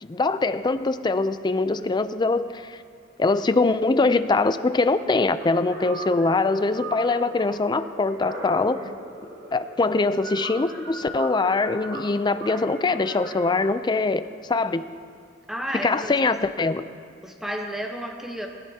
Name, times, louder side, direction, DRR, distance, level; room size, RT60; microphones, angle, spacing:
voice 1, 0.0-2.8 3.2-8.8 9.2-14.8 15.7-16.8, left 3 dB, 25° left, 12 dB, 0.4 m, -23 dB
sound 1, 5.4-13.6, right 1 dB, 70° right, 2.1 m, -38 dB
voice 2, 15.5-16.4 17.2-18.5, equal, ahead, 1 dB, 0.9 m, -32 dB
20.5 x 15.0 x 2.8 m, 2.4 s
head